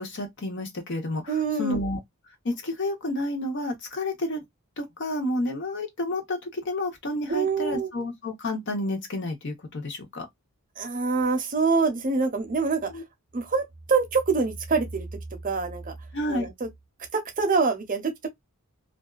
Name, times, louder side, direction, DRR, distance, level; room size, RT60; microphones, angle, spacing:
voice 1, 0.0-2.0 2.4-4.4 4.8-10.3 12.9-13.0 16.1-16.5, left 1 dB, 55° left, 0.8 m, -30 dB
voice 2, 1.3-1.8 7.3-7.9 10.8-12.9 13.3-15.1 15.4-15.9 16.3-16.7 17.1-18.3, right 4 dB, 40° right, 0.7 m, -25 dB
2.5 x 2.3 x 2.3 m
head